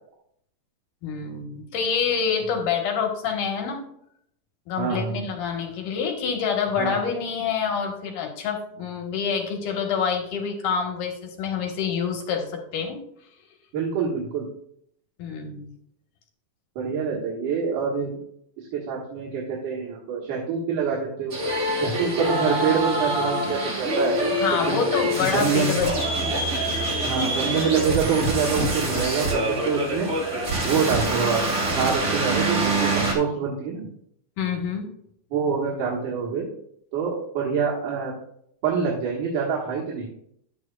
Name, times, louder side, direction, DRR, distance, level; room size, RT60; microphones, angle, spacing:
voice 1, 1.0-3.8 4.7-13.0 15.2-15.7 24.3-26.4 34.4-34.9, left 6 dB, 85° left, 2 dB, 3.0 m, -27 dB
voice 2, 4.8-5.2 6.8-7.0 13.7-14.4 16.8-18.1 18.6-21.4 21.7-24.8 25.3-25.8 27.0-30.1 30.6-31.4 31.7-33.8 35.3-36.5 36.9-38.1 38.6-40.1, right 6 dB, 75° right, -4 dB, 3.0 m, -26 dB
sound 1, 21.3-33.1, right 1 dB, 35° right, 2.4 m, -25 dB
11.0 x 9.4 x 2.4 m, 0.71 s
omnidirectional pair, 3.6 m